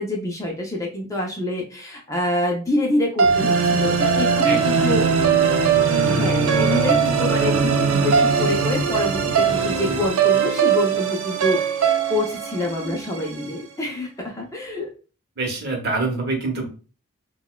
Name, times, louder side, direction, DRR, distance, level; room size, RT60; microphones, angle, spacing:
voice 1, 0.0-5.0 5.4-5.6 6.1-14.9, left 1 dB, 15° left, -1 dB, 0.5 m, -26 dB
sound 1, 3.2-10.1, left 3 dB, 70° left, 0.4 m, -34 dB
sound 2, 3.2-13.5, right 6 dB, 80° right, 0.4 m, -20 dB
voice 2, 4.4-5.2 15.4-16.7, right 3 dB, 50° right, 2 dB, 0.8 m, -26 dB
3.9 x 2.2 x 2.2 m, 0.35 s
head